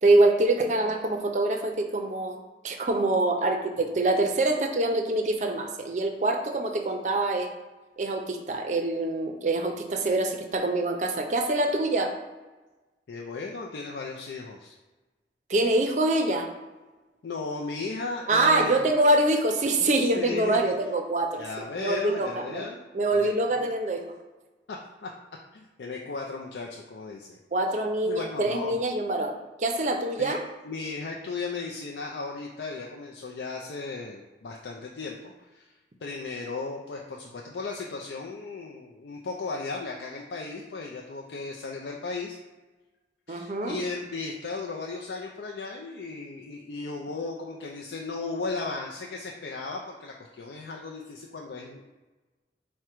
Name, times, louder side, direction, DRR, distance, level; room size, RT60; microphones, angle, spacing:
voice 1, 0.0-2.4 2.6-7.5 8.0-12.1 15.5-16.5 18.3-21.4 21.8-22.7 22.9-24.0 27.5-30.4 43.3-43.8, right 2 dB, 40° right, 4 dB, 0.5 m, -25 dB
voice 2, 13.1-14.8 17.2-18.9 20.1-20.7 21.4-22.8 23.1-23.3 23.6-23.7 24.7-25.1 25.5-27.4 28.1-28.8 30.2-30.4 30.6-42.4 43.3-51.9, left 3 dB, 85° left, -1 dB, 0.4 m, -36 dB
4.8 x 2.1 x 4.4 m, 1.2 s
head